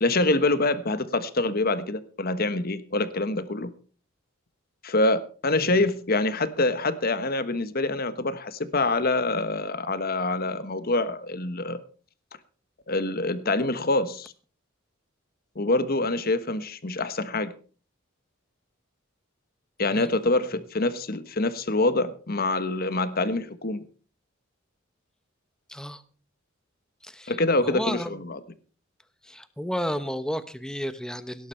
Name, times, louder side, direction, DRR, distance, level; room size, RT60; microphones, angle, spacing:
voice 1, 0.0-3.7 4.8-11.8 12.9-14.3 15.5-17.5 19.8-23.8 27.3-28.4, left 2 dB, 45° left, 12 dB, 1.3 m, -25 dB
voice 2, 25.7-26.0 27.0-27.3 27.6-28.2 29.2-31.5, equal, 5° left, 12 dB, 1.0 m, -32 dB
17.5 x 11.0 x 4.4 m, 0.40 s
head